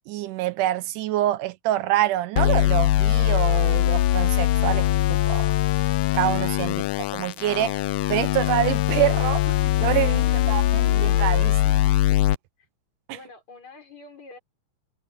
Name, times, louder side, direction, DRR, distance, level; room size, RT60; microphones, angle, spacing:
voice 1, 0.1-5.5 6.1-6.8 7.1-7.8 8.1-10.2 10.5-11.8 13.1-13.2, right 14 dB, 80° right, 2.2 m, -26 dB
sound 1, 2.4-12.4, left 15 dB, 80° left, 2.0 m, -21 dB
voice 2, 13.1-14.4, left 4 dB, 55° left, 7.3 m, -46 dB
omnidirectional pair, 3.7 m